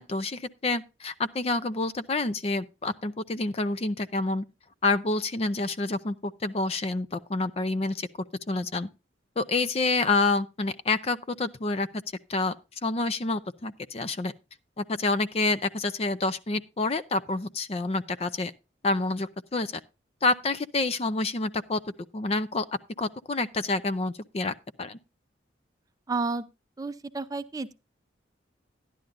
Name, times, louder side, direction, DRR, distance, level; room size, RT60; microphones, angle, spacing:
voice 1, 0.0-4.4 4.8-8.1 8.5-8.9 9.4-11.9 12.3-12.6 12.8-14.3 14.8-18.5 18.8-19.7 20.2-21.8 22.1-22.6 23.0-25.0, left 3 dB, 30° left, 0.5 m, -28 dB
voice 2, 26.1-26.5 26.8-27.7, right 3 dB, 20° right, 0.5 m, -31 dB
13.0 x 10.5 x 2.5 m
head